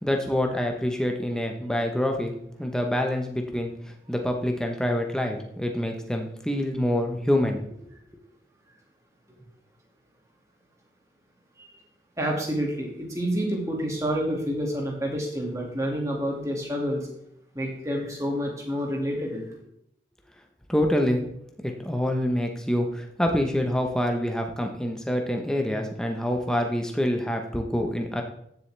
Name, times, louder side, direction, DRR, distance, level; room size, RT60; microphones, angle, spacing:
voice 1, 0.0-2.3 2.6-3.7 4.1-7.6 20.7-21.2 21.6-28.2, left 1 dB, 5° left, 3 dB, 0.9 m, -26 dB
voice 2, 12.2-17.1 17.5-19.6, equal, 20° right, 0 dB, 2.1 m, -28 dB
14.0 x 7.2 x 3.3 m, 0.75 s
head